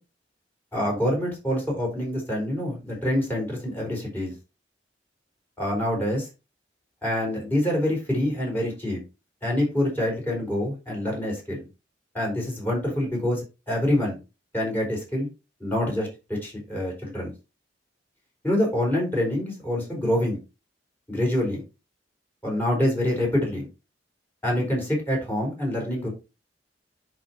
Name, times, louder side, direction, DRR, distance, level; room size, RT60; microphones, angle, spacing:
voice 1, 0.7-4.3 5.6-6.3 7.0-9.0 9.4-11.7 12.1-14.2 14.5-15.3 15.6-17.3 18.4-20.4 21.1-21.6 22.4-23.7 24.4-26.1, left 1 dB, 10° left, -2 dB, 4.4 m, -26 dB
10.5 x 4.6 x 2.9 m, 0.27 s
head